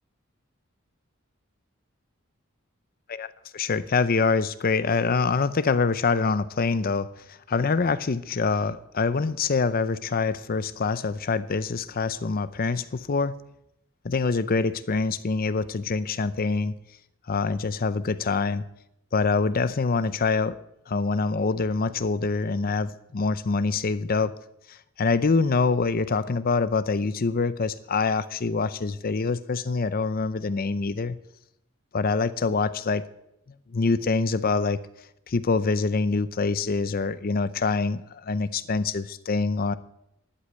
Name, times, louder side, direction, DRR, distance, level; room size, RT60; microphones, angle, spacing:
voice 1, 3.1-13.4 14.0-16.7 17.3-18.6 19.1-20.6 20.9-24.3 24.7-31.2 31.9-33.0 33.7-34.8 35.3-39.8, left 4 dB, 45° left, 15 dB, 0.5 m, -25 dB
11.5 x 8.3 x 9.5 m, 0.81 s
head